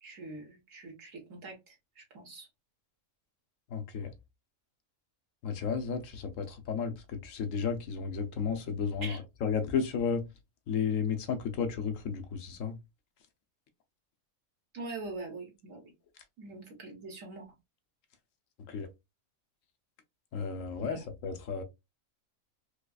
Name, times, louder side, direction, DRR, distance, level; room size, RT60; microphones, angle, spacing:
voice 1, 0.0-2.5 9.0-9.2 14.7-15.8 16.4-17.5 20.7-21.0, right 3 dB, 70° right, 1.7 m, -43 dB
voice 2, 3.7-4.1 5.4-10.3 10.7-12.8 18.7-18.9 20.3-21.6, left 6 dB, 70° left, 1.0 m, -33 dB
4.8 x 2.3 x 2.3 m
omnidirectional pair, 1.4 m